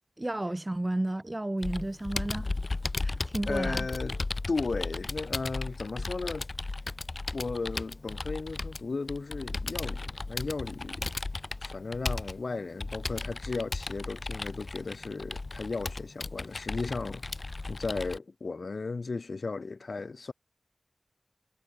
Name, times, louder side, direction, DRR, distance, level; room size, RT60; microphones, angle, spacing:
voice 1, 0.2-2.5 3.0-3.9, right 1 dB, 30° right, 1.6 m, -32 dB
Computer keyboard, 1.6-18.2, left 3 dB, 60° left, 2.0 m, -35 dB
voice 2, 3.5-6.5 7.3-11.1 11.6-17.2 17.7-20.3, left 3 dB, 80° left, 2.6 m, -35 dB
cardioid pair, 45°, 0 cm